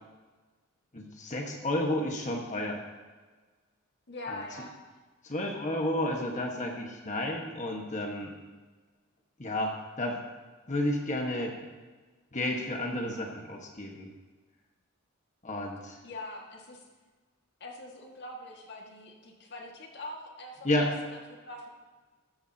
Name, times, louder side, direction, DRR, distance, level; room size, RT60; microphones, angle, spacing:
voice 1, 0.9-2.8 4.3-4.4 5.2-8.3 9.4-10.2 10.7-11.7 12.3-14.1 15.4-16.0 20.6-20.9, left 1 dB, 35° left, 1 dB, 1.4 m, -31 dB
voice 2, 4.1-4.7 16.0-16.9 17.6-21.7, left 1 dB, 50° left, 0 dB, 1.9 m, -43 dB
14.5 x 13.5 x 2.9 m, 1.3 s
head